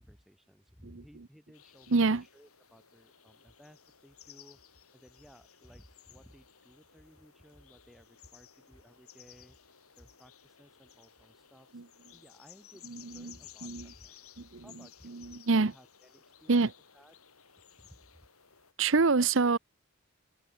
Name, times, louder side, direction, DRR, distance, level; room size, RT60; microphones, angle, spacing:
voice 1, 0.0-16.7 16.9-17.2 17.8-18.3, equal, ahead, 7.9 m, -58 dB
sound 1, 1.5-18.7, left 10 dB, 90° left, 6.4 m, -57 dB
voice 2, 1.9-2.2 11.7-11.8 13.6-13.9 14.5-14.6 15.2-15.7 16.5-16.7 18.8-19.6, right 4 dB, 60° right, 0.7 m, -25 dB
head